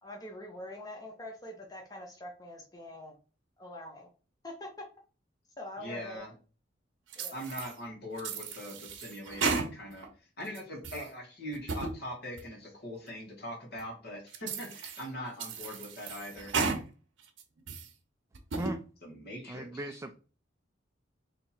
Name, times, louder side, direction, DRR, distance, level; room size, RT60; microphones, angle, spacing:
voice 1, 0.0-3.2 3.6-4.1 4.4-4.7 5.6-6.3 7.2-7.4, left 1 dB, 20° left, 0.8 m, -44 dB
voice 2, 5.8-6.3 7.3-10.1 10.4-16.5 19.0-20.1, equal, 55° left, 1.7 m, -42 dB
sound 1, 7.1-7.7 8.2-10.1 10.5-11.1 11.5-11.9 12.4-12.5 13.1-13.2 13.8-13.9 14.3-15.0 15.4-16.8 17.2-17.9 18.3-18.8, right 4 dB, 75° right, 0.8 m, -34 dB
voice 3, 19.5-20.1, right 1 dB, 15° right, 0.4 m, -37 dB
3.4 x 2.9 x 4.2 m
head